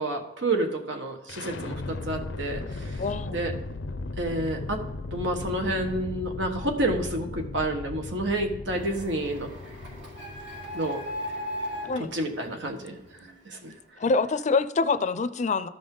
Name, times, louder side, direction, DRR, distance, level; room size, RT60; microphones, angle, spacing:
voice 1, 0.0-3.0 3.3-3.5 4.2-4.8 5.1-9.5 10.7-11.0 12.0-13.0 13.4-13.7, right 1 dB, 90° right, 4 dB, 1.5 m, -29 dB
sound 1, 1.3-13.2, left 2 dB, 85° left, 0.6 m, -37 dB
voice 2, 3.0-3.4 11.9-12.1 14.0-15.7, left 4 dB, 40° left, 12 dB, 0.5 m, -25 dB
Printer, 8.8-13.3, equal, 70° right, 3.0 m, -38 dB
13.5 x 5.3 x 3.9 m, 0.97 s
head